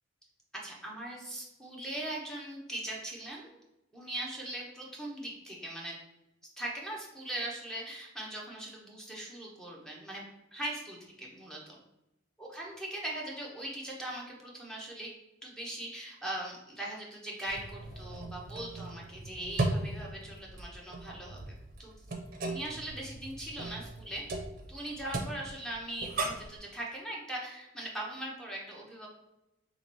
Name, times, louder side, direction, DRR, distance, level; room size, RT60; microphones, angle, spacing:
voice 1, 0.5-3.6 3.9-6.0 6.6-10.2 10.5-11.8 12.4-15.1 15.4-21.4 21.8-21.9 22.4-24.2 24.7-29.1, right 1 dB, 5° left, -2 dB, 0.6 m, -40 dB
sound 1, 17.5-26.6, right 2 dB, 45° right, 0.5 m, -38 dB
2.9 x 2.8 x 4.4 m, 0.95 s
head